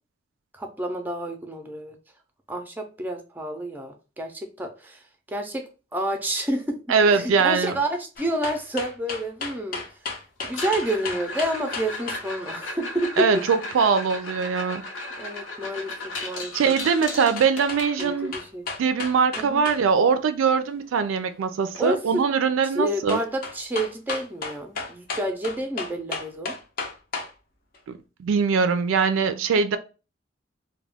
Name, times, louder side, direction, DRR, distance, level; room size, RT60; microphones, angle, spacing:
voice 1, 0.5-2.0 2.5-5.0 5.3-6.8 7.1-9.8 10.4-13.3 15.2-16.7 18.0-18.7 19.4-19.6 21.8-22.2 22.7-26.6, right 1 dB, 10° right, 0.4 m, -29 dB
voice 2, 6.9-7.7 13.2-14.9 16.5-18.3 18.8-23.2 27.9-29.8, right 5 dB, 90° right, 0.3 m, -22 dB
sound 1, 8.2-12.3 17.4-19.8 20.1-20.2 23.1-27.3 27.7-27.8, left 4 dB, 50° left, 0.5 m, -33 dB
sound 2, 10.4-18.4 20.7-20.8 21.0-21.3 21.7-21.8 22.4-22.5 24.4-24.5, left 2 dB, 80° left, 0.8 m, -36 dB
2.3 x 2.1 x 3.3 m
head